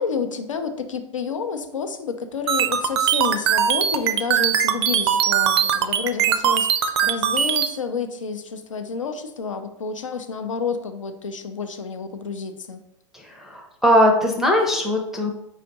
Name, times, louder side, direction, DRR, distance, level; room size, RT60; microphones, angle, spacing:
voice 1, 0.0-12.8, left 5 dB, 75° left, 7 dB, 0.6 m, -29 dB
sound 1, 2.5-7.7, right 9 dB, 55° right, 0.4 m, -20 dB
voice 2, 13.1-15.3, equal, ahead, 2 dB, 0.5 m, -20 dB
4.7 x 2.5 x 3.9 m, 0.83 s
figure-of-eight pair, 95°, 16 cm